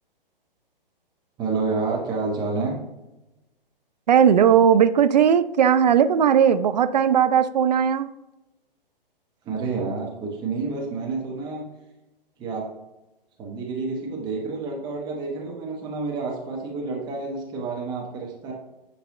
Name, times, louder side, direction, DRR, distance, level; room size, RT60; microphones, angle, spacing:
voice 1, 1.4-2.8 9.4-11.7 12.4-12.7 13.4-18.5, right 4 dB, 15° right, -2 dB, 1.0 m, -29 dB
voice 2, 4.1-8.1, right 8 dB, 50° right, 12 dB, 0.4 m, -18 dB
9.1 x 3.3 x 3.7 m, 0.99 s
figure-of-eight pair, 120°, 29 cm